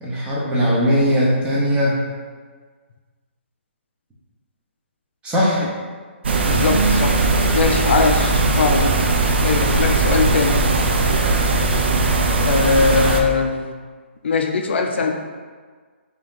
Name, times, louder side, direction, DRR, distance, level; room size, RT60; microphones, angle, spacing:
voice 1, 0.0-2.0 5.2-5.7, equal, 15° right, -6 dB, 0.9 m, -19 dB
sound 1, 6.2-13.2, right 3 dB, 60° right, 0.5 m, -18 dB
voice 2, 6.5-8.9 9.4-10.6 12.4-13.7 14.2-15.1, left 4 dB, 65° left, 3 dB, 0.4 m, -20 dB
3.5 x 2.8 x 3.6 m, 1.5 s
hypercardioid pair, 145°, 7 cm